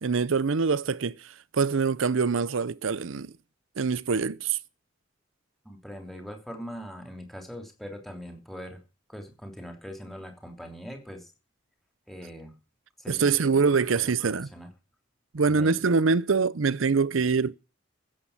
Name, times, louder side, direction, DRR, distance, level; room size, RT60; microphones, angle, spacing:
voice 1, 0.0-3.3 3.8-4.6 13.1-14.5 15.3-17.6, right 5 dB, 85° right, 0.7 m, -24 dB
voice 2, 5.6-8.8 9.1-11.3 12.1-12.6 13.0-13.4 13.9-14.7 15.5-15.8, equal, ahead, 3.2 m, -41 dB
15.0 x 7.6 x 7.2 m
head